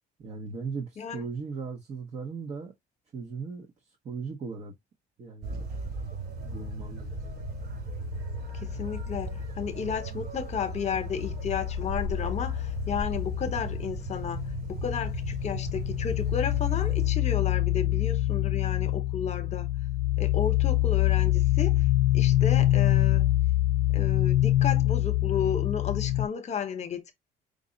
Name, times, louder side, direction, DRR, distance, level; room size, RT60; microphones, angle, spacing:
voice 1, 0.2-2.7 3.1-4.7 5.2-5.7 6.4-7.1, right 5 dB, 40° right, 0.8 m, -38 dB
sound 1, 5.4-17.1, right 4 dB, 60° right, 2.7 m, -37 dB
sound 2, 6.4-10.2 10.5-26.3, left 15 dB, 80° left, 0.4 m, -27 dB
voice 2, 8.6-14.4 14.7-19.7 20.2-21.8 22.1-23.3 23.9-27.1, left 7 dB, 40° left, 0.9 m, -33 dB
5.1 x 2.0 x 3.8 m
cardioid pair, 110°, 17 cm